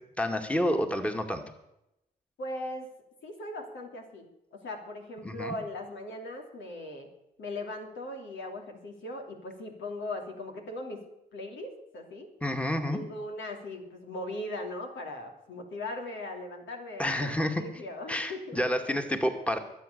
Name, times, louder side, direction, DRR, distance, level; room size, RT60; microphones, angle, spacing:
voice 1, 0.2-1.4 5.2-5.6 12.4-13.0 17.0-17.6 18.1-19.6, left 1 dB, 5° left, 5 dB, 2.2 m, -29 dB
voice 2, 2.4-2.9 3.2-7.1 7.4-11.1 11.3-12.3 12.9-18.6, left 1 dB, 70° left, 2 dB, 3.0 m, -39 dB
21.5 x 8.0 x 6.8 m, 0.85 s
hypercardioid pair, 40°, 20 cm